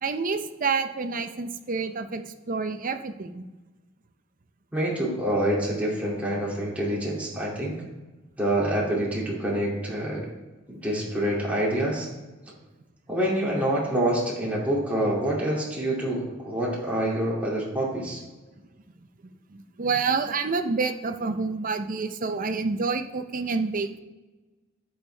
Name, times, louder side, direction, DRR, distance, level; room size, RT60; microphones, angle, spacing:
voice 1, 0.0-3.4 19.5-24.0, right 4 dB, 40° right, 8 dB, 0.6 m, -28 dB
voice 2, 4.7-7.7 8.4-10.2 10.7-12.1 13.1-18.2, right 1 dB, 5° right, -6 dB, 2.5 m, -26 dB
11.5 x 7.0 x 3.4 m, 1.2 s
head